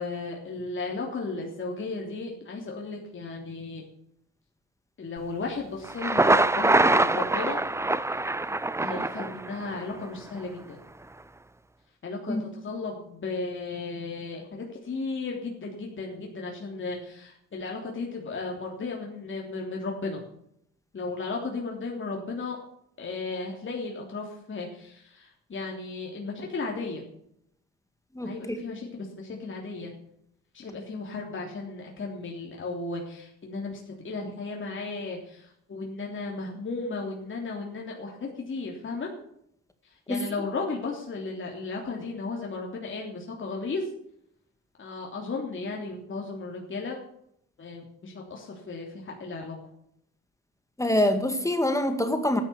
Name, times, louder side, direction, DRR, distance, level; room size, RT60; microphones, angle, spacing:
voice 1, 0.0-3.8 5.0-7.6 8.1-8.3 8.8-10.8 12.0-20.2 20.9-22.6 23.0-27.0 28.2-29.9 30.5-39.1 39.8-43.9 44.8-47.0 47.6-49.6, left 3 dB, 40° left, 0 dB, 3.2 m, -35 dB
Thunder, 5.8-9.8, right 2 dB, 10° right, 0.6 m, -24 dB
voice 2, 28.2-28.6 40.1-40.2 50.8-52.4, left 1 dB, 10° left, 7 dB, 2.1 m, -25 dB
12.5 x 10.5 x 7.0 m, 0.72 s
cardioid pair, 90°, 30 cm